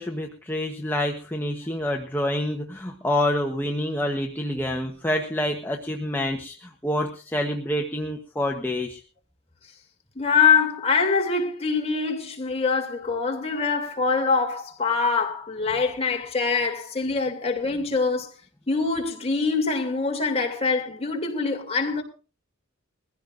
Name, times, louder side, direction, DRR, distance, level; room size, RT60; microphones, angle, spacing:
voice 1, 0.0-9.0, left 1 dB, 10° left, 1.1 m, -27 dB
voice 2, 10.1-18.3 18.7-22.0, left 4 dB, 30° left, 2.8 m, -24 dB
21.5 x 15.5 x 2.6 m
head